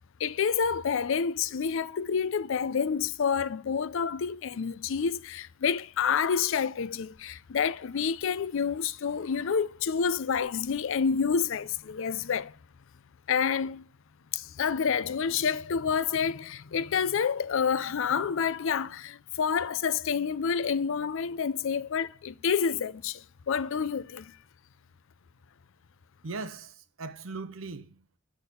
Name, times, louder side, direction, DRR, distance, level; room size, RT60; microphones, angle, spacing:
voice 1, 0.2-12.5 13.3-13.9 14.3-24.3, left 6 dB, 70° left, 0.5 m, -28 dB
voice 2, 26.2-28.2, right 3 dB, 70° right, 0.8 m, -39 dB
6.5 x 6.1 x 6.8 m
head